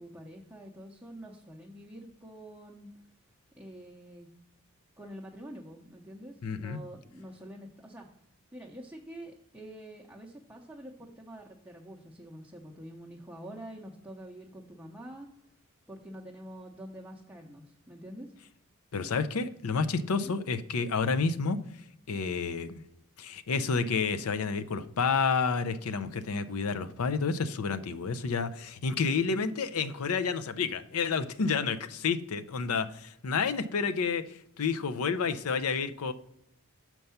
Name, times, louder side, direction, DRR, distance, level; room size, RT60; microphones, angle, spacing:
voice 1, 0.0-2.9 3.6-4.3 5.0-8.1 8.5-15.3 15.9-18.3 20.0-20.3, right 1 dB, 10° right, -2 dB, 0.7 m, -46 dB
voice 2, 6.4-6.8 18.9-21.6 22.1-22.8 23.2-36.1, left 5 dB, 75° left, 12 dB, 0.5 m, -30 dB
6.6 x 4.6 x 5.6 m, 0.78 s
head